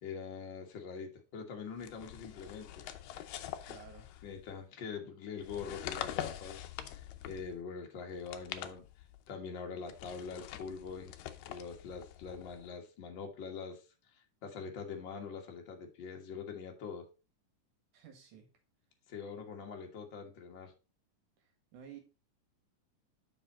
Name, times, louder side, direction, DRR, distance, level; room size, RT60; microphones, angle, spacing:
voice 1, 0.0-2.8 4.2-8.8 9.3-11.1 11.5-13.8 14.4-17.1 19.1-20.7, left 5 dB, 50° left, 1.7 m, -44 dB
Paper Handling, 1.8-4.6 5.4-7.6 8.1-9.3 9.8-12.7, left 11 dB, 75° left, 1.9 m, -45 dB
voice 2, 3.7-4.1 17.9-18.5 21.4-22.0, right 8 dB, 75° right, 3.1 m, -53 dB
7.2 x 5.8 x 4.3 m
omnidirectional pair, 3.6 m